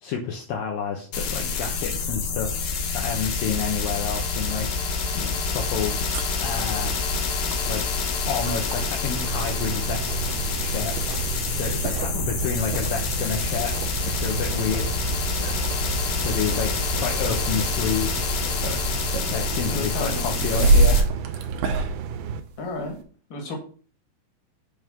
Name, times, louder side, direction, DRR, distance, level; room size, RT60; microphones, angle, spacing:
voice 1, 0.0-6.0 6.4-6.9 7.7-10.2 10.6-15.6 16.2-18.8 19.3-21.5, left 6 dB, 85° left, 1 dB, 2.0 m, -30 dB
sound 1, 1.1-21.0, left 4 dB, 65° left, 2.6 m, -27 dB
sound 2, 5.8-23.0, right 2 dB, 70° right, 2.5 m, -29 dB
sound 3, 9.2-22.4, right 7 dB, 90° right, 3.1 m, -32 dB
voice 2, 19.7-20.7 22.6-23.0 23.3-23.5, left 2 dB, 40° left, 1 dB, 1.8 m, -33 dB
9.4 x 3.6 x 5.9 m, 0.42 s
omnidirectional pair, 5.3 m